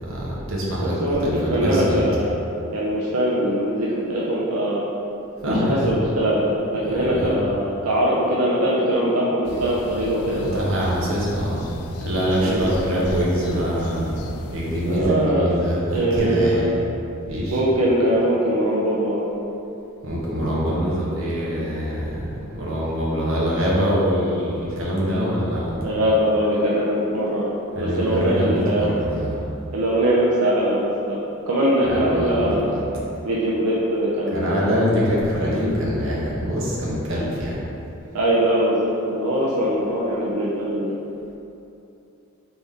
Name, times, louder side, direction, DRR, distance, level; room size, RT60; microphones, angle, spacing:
voice 1, 0.0-0.9 1.2-2.0 5.4-6.0 6.9-7.3 10.3-11.6 12.0-14.1 14.5-16.7 17.3-17.6 20.0-22.3 22.5-25.8 27.7-29.4 31.8-32.8 34.3-37.6, equal, 60° right, -6 dB, 1.0 m, -24 dB
voice 2, 0.8-2.3 2.7-4.8 5.5-10.7 12.5-12.7 14.8-15.5 15.9-16.7 17.5-19.3 25.8-27.5 27.8-28.9 29.7-31.2 31.5-32.8 33.2-34.7 37.1-37.2 38.1-40.9, right 1 dB, 85° right, -6 dB, 0.6 m, -22 dB
sound 1, 9.4-15.0, left 2 dB, 85° left, 0.3 m, -36 dB
4.0 x 3.4 x 3.6 m, 2.7 s
head